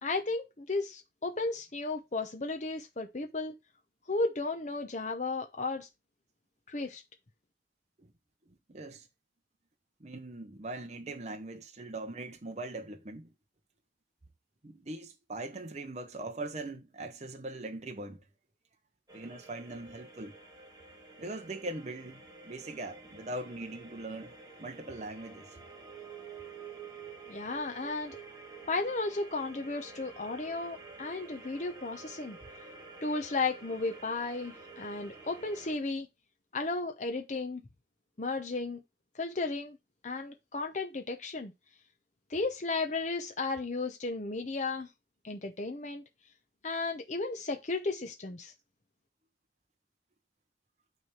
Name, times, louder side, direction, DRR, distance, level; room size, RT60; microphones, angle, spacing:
voice 1, 0.0-3.5 4.1-5.9 6.7-7.0 27.3-28.2 28.7-32.4 33.0-36.1 36.5-37.6 38.2-38.8 39.1-39.8 40.0-41.5 42.3-44.9 45.2-46.0 46.6-48.5, left 3 dB, 40° left, 0.8 m, -34 dB
voice 2, 8.5-9.1 10.0-13.3 14.6-18.2 19.1-20.4 21.2-24.3 24.6-25.6 31.1-31.4, right 2 dB, 35° right, 0.8 m, -41 dB
sound 1, 19.1-35.8, right 4 dB, 20° right, 1.8 m, -49 dB
9.4 x 3.4 x 4.4 m
head